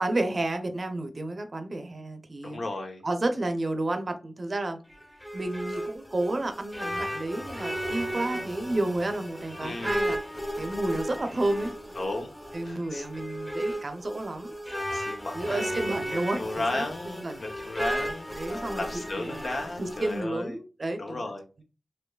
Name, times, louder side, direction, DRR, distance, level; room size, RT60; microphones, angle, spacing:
voice 1, 0.0-2.6 3.0-4.8 5.3-10.2 10.6-11.7 12.5-14.5 15.3-17.4 18.4-18.8 19.2-19.4 19.8-21.3, right 2 dB, 45° right, 0.6 m, -31 dB
voice 2, 2.4-3.0 9.6-10.1 12.0-12.3 12.7-13.0 14.9-15.8 16.1-20.6 21.0-21.6, left 2 dB, 65° left, 0.8 m, -35 dB
sound 1, 4.9-20.2, equal, 10° left, 0.8 m, -35 dB
4.6 x 2.5 x 2.3 m
wide cardioid pair, 65°, 0 cm